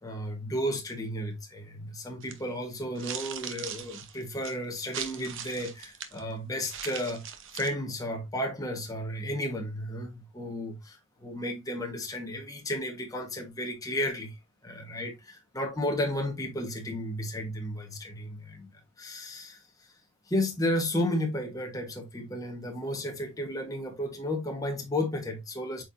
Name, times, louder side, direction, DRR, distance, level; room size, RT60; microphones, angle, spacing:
voice 1, 0.0-7.3 7.5-14.4 14.6-18.7 19.0-19.9 20.3-25.8, left 1 dB, 15° left, 1.3 m, -33 dB
sound 1, 2.2-2.4 2.9-6.2 6.7-7.7, right 8 dB, 55° right, 0.9 m, -40 dB
7.9 x 4.5 x 2.6 m
head